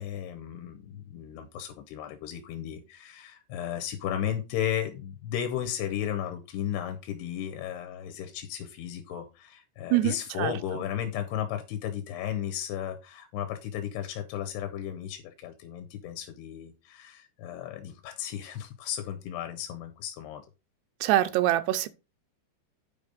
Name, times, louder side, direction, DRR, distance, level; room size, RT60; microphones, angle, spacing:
voice 1, 0.0-20.4, left 10 dB, 85° left, 2.9 m, -34 dB
voice 2, 9.9-10.5 21.0-21.9, right 14 dB, 85° right, 2.8 m, -24 dB
9.2 x 5.3 x 5.2 m
omnidirectional pair, 4.7 m